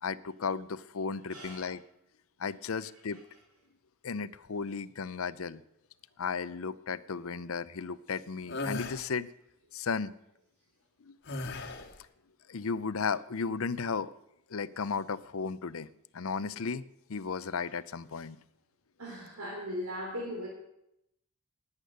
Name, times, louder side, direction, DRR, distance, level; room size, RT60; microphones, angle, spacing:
voice 1, 0.0-1.8 2.4-3.2 4.0-5.6 6.2-9.3 9.7-10.1 11.0-11.2 12.5-14.1 14.5-18.4, left 5 dB, 70° left, 16 dB, 0.6 m, -35 dB
voice 2, 1.3-1.7 19.0-20.5, equal, 85° right, -2 dB, 3.6 m, -38 dB
sound 1, 8.5-9.0 11.3-12.0, left 2 dB, 50° left, 1.6 m, -36 dB
19.5 x 8.3 x 6.6 m, 0.82 s
head